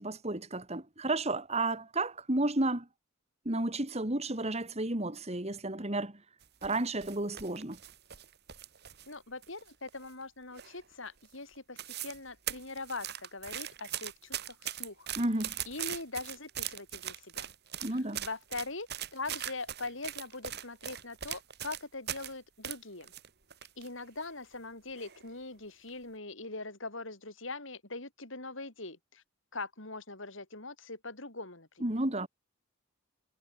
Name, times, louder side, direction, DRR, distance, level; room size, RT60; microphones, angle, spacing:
voice 1, 0.0-2.9 3.4-6.2 6.6-7.8 15.2-15.5 17.8-18.2 31.8-32.3, right 2 dB, 30° right, 2.5 m, -32 dB
sound 1, 6.4-9.1 9.4-10.2 10.6-10.9 11.2-11.3 11.6-12.2 12.5-22.3 22.6-23.9 24.2-24.3 25.0-25.3 25.7-25.9, right 11 dB, 50° right, 2.5 m, -40 dB
voice 2, 9.1-15.1 15.7-17.5 17.9-18.9 19.1-23.1 23.8-29.2 29.5-31.9, left 3 dB, 60° left, 4.9 m, -42 dB
head